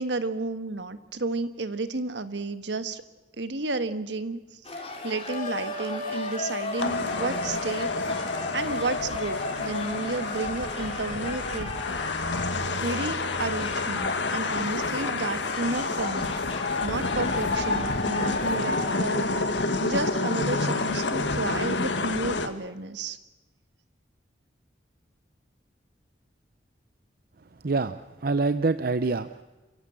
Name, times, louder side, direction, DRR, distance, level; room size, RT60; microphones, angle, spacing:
voice 1, 0.0-3.0 3.4-7.9 8.5-12.0 12.8-16.4 16.8-19.5 19.8-23.2, right 3 dB, 75° right, 11 dB, 1.5 m, -32 dB
sound 1, 4.6-18.9, left 2 dB, 30° left, 3.7 m, -38 dB
Wind instrument woodwind instrument, 5.3-10.8, left 2 dB, 50° left, 4.0 m, -34 dB
sound 2, 6.8-22.5, left 3 dB, 80° left, 1.7 m, -29 dB
voice 2, 27.6-29.4, right 3 dB, 55° right, 12 dB, 0.7 m, -26 dB
28.0 x 15.5 x 8.8 m, 1.2 s
head